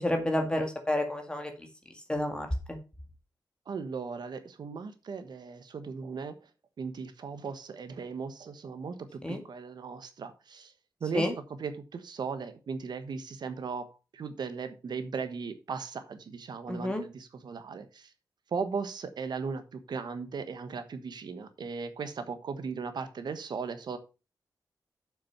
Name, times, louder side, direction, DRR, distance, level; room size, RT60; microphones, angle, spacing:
voice 1, 0.0-1.5 2.1-2.5 9.2-9.4 11.1-11.3 16.7-17.0, left 1 dB, 10° left, 4 dB, 1.9 m, -29 dB
voice 2, 3.7-6.4 6.8-10.7 11.0-11.3 11.6-18.1 18.5-24.0, right 5 dB, 70° right, 10 dB, 1.3 m, -37 dB
7.3 x 6.2 x 5.8 m, 0.30 s
wide cardioid pair, 130°, 8 cm